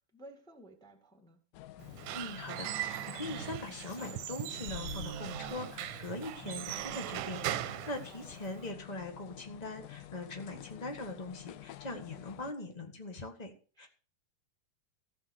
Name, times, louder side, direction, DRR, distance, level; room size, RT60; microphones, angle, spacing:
voice 1, 0.0-1.4 8.1-8.4 10.4-10.7 13.8-13.9, right 1 dB, ahead, 1.0 m, -55 dB
sound 1, 1.5-12.5, left 13 dB, 75° left, 2.2 m, -49 dB
Squeak / Wood, 1.8-8.7, right 13 dB, 75° right, 2.1 m, -40 dB
voice 2, 2.1-13.5 13.8-13.9, left 2 dB, 45° left, 0.5 m, -42 dB
16.0 x 5.9 x 8.1 m
omnidirectional pair, 3.9 m